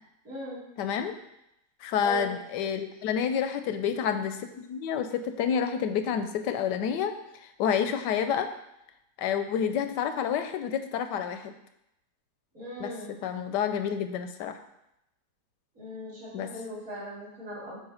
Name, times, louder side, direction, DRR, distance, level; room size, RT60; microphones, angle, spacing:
voice 1, 0.2-0.6 2.0-2.3 12.5-13.2 15.7-17.8, equal, 50° right, -10 dB, 2.9 m, -38 dB
voice 2, 0.8-1.1 1.8-7.1 7.6-8.5 9.2-11.5 12.8-14.6 16.3-16.5, left 8 dB, 85° left, 8 dB, 1.2 m, -29 dB
8.6 x 3.1 x 5.6 m, 0.84 s
omnidirectional pair, 1.8 m